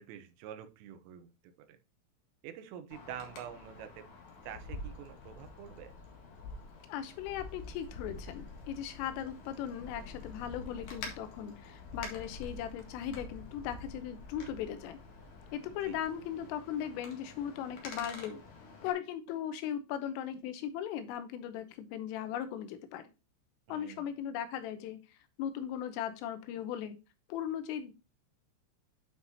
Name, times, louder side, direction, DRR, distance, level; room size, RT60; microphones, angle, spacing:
voice 1, 0.0-1.8 2.4-5.9 15.8-16.0 23.7-24.1, right 9 dB, 80° right, 9 dB, 3.4 m, -47 dB
Wind, 2.9-18.9, left 3 dB, 60° left, 2.0 m, -47 dB
voice 2, 6.9-15.0 15.5-18.4 18.8-23.1 23.7-25.0 25.4-27.0 27.3-27.9, left 9 dB, 85° left, 10 dB, 3.5 m, -38 dB
9.5 x 5.9 x 2.8 m, 0.28 s
omnidirectional pair, 5.8 m